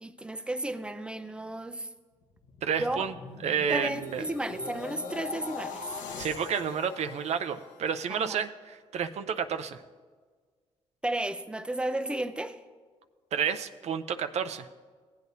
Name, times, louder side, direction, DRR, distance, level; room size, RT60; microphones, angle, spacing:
voice 1, 0.0-1.9 2.8-3.0 3.7-5.9 8.1-8.4 11.0-12.6, right 1 dB, 10° right, 10 dB, 0.6 m, -33 dB
sound 1, 2.2-8.5 8.9-9.2, left 5 dB, 85° left, 1.1 m, -42 dB
voice 2, 2.6-3.1 3.4-4.2 6.2-9.8 13.3-14.7, right 7 dB, 60° right, 9 dB, 0.5 m, -30 dB
16.0 x 8.5 x 2.7 m, 1.5 s
supercardioid pair, 70°, 13 cm